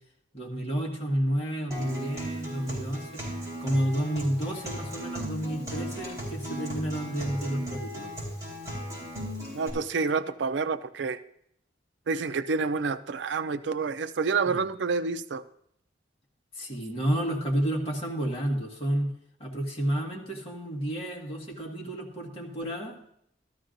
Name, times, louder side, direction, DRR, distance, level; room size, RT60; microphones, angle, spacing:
voice 1, 0.3-3.2 3.6-8.1 14.5-14.6 16.6-19.1 19.4-22.9, right 1 dB, 35° left, -2 dB, 1.8 m, -30 dB
Acoustic guitar, 1.7-9.7, equal, 20° right, 4.5 m, -36 dB
voice 2, 9.5-11.2 12.1-15.4, right 4 dB, 85° right, 12 dB, 0.5 m, -28 dB
13.5 x 13.0 x 2.6 m, 0.71 s
head